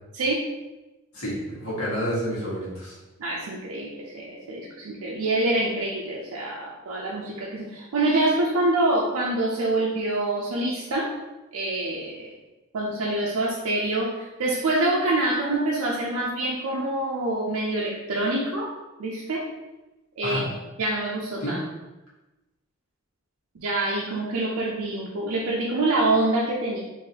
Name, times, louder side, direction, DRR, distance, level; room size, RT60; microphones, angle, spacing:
voice 1, 1.1-3.0 20.2-20.4 21.4-21.5, equal, 80° left, -7 dB, 1.4 m, -29 dB
voice 2, 3.2-11.1 11.5-12.3 12.7-18.7 19.0-19.4 20.2-20.4 20.8-21.6 23.6-26.8, right 2 dB, 90° right, -3 dB, 0.5 m, -26 dB
3.8 x 2.7 x 2.8 m, 1.1 s
head